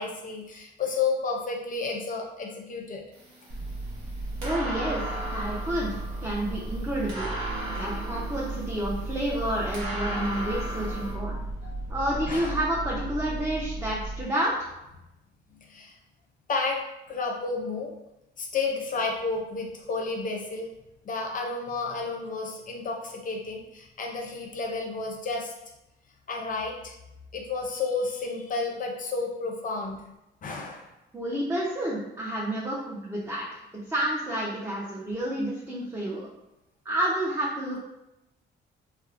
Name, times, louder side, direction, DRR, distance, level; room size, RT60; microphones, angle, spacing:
voice 1, 0.0-3.0 10.9-11.8 12.3-12.6 15.7-16.0 16.5-16.8 17.1-17.9 18.4-20.7 21.0-25.5 26.3-26.9 27.3-30.0 30.4-30.9, left 4 dB, 45° left, 1 dB, 0.5 m, -31 dB
sound 1, 3.1-11.1, right 1 dB, 80° right, 1.0 m, -37 dB
sound 2, 3.5-14.2, right 2 dB, 65° right, 0.7 m, -35 dB
voice 2, 4.4-5.0 5.3-5.9 6.2-11.3 11.9-14.7 31.1-33.6 33.9-36.2 36.8-37.8, right 1 dB, 10° right, -5 dB, 0.5 m, -30 dB
2.9 x 2.0 x 2.4 m, 0.91 s
cardioid pair, 90°, 20 cm